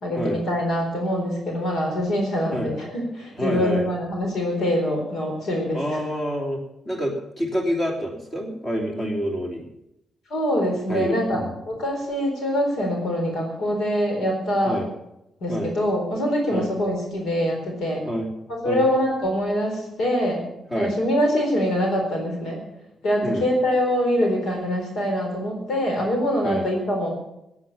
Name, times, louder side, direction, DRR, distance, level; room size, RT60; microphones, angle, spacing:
voice 1, 0.0-5.8 10.3-14.8 15.4-18.0 18.6-20.4 20.7-22.6 23.0-27.1, equal, 75° left, 1 dB, 4.2 m, -24 dB
voice 2, 3.4-3.8 5.7-6.6 6.8-9.7 10.9-11.6 14.6-14.9 15.5-15.7 16.5-16.7 18.0-18.3 18.6-18.9 20.7-21.0 23.2-23.5 26.4-26.6, equal, 30° left, 0 dB, 3.3 m, -27 dB
17.0 x 8.7 x 7.2 m, 0.85 s
cardioid pair, 135°, 0 cm